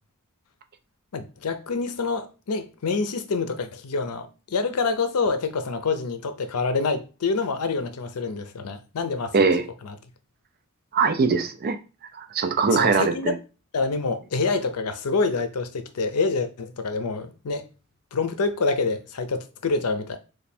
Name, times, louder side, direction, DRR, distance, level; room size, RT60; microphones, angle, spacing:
voice 1, 1.1-9.3 9.8-9.9 12.7-13.4 13.7-17.7 18.1-20.2, left 4 dB, 80° left, 0.6 m, -26 dB
voice 2, 9.3-9.7 10.9-11.8 12.2-13.3, right 4 dB, 45° right, 0.4 m, -21 dB
3.2 x 2.3 x 4.2 m
head